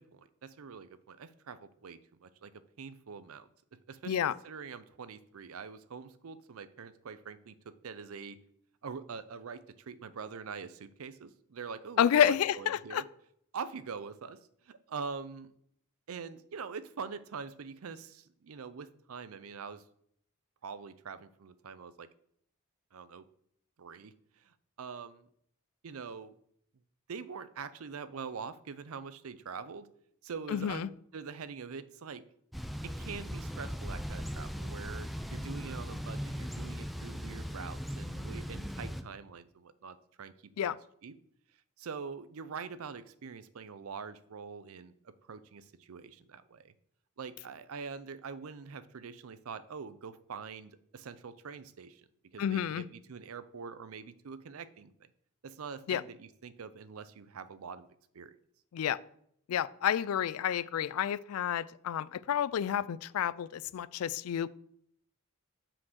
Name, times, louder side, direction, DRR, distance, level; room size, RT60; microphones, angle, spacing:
voice 1, 0.0-2.5 2.8-3.5 3.9-4.2 4.4-8.4 8.8-13.1 13.5-14.4 14.6-15.5 16.1-19.8 20.6-22.1 22.9-23.3 23.8-25.3 25.8-26.4 27.1-29.9 30.2-32.2 32.8-40.8 41.0-41.2 41.8-46.7 47.2-52.1 52.3-55.1 55.4-57.9 58.1-58.4, right 5 dB, 80° right, 14 dB, 0.5 m, -44 dB
voice 2, 12.0-13.0 30.5-30.9 40.6-40.8 52.4-52.8 55.9-56.0 58.7-59.0 59.5-64.5, left 9 dB, 85° left, 19 dB, 0.3 m, -30 dB
Thunder / Bicycle, 32.5-39.0, equal, ahead, 0.4 m, -39 dB
5.9 x 5.0 x 6.3 m, 0.69 s
head